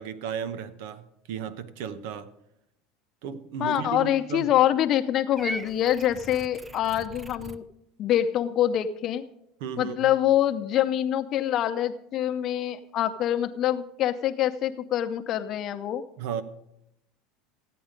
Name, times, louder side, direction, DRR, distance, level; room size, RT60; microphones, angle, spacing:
voice 1, 0.0-2.3 3.2-4.5 9.6-10.1 16.2-16.4, right 7 dB, 75° right, 1.0 m, -35 dB
voice 2, 3.6-7.6 8.0-9.2 9.8-16.0, left 11 dB, 45° left, 0.7 m, -25 dB
Purr / Meow, 5.4-7.6, right 2 dB, 15° right, 0.7 m, -39 dB
15.0 x 9.4 x 5.1 m
supercardioid pair, 110°, 0 cm